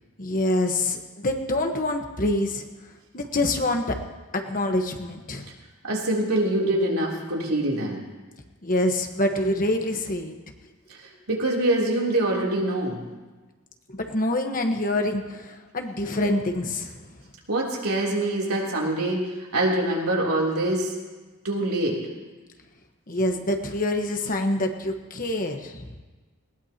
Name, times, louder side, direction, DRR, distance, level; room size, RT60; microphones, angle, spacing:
voice 1, 0.2-2.6 3.1-4.0 4.3-5.5 8.6-10.3 13.9-17.0 23.1-26.0, left 1 dB, 40° left, 4 dB, 1.3 m, -26 dB
voice 2, 5.8-8.1 10.9-13.0 17.5-21.0 21.4-22.1, right 1 dB, 85° right, -3 dB, 3.4 m, -25 dB
20.0 x 19.5 x 3.0 m, 1.3 s
head